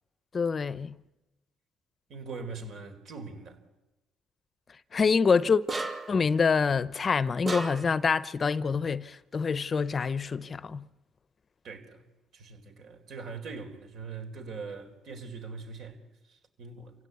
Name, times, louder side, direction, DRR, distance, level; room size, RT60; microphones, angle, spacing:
voice 1, 0.3-1.0 4.9-5.6 6.1-10.9, left 5 dB, 35° left, 0.7 m, -26 dB
voice 2, 2.1-3.6 11.6-12.0 12.3-16.0 16.3-16.9, right 4 dB, 65° right, 4.1 m, -41 dB
sound 1, 5.7-6.3 7.5-8.0, right 3 dB, 30° right, 2.4 m, -34 dB
28.0 x 17.0 x 8.4 m
cardioid pair, 90°, 0 cm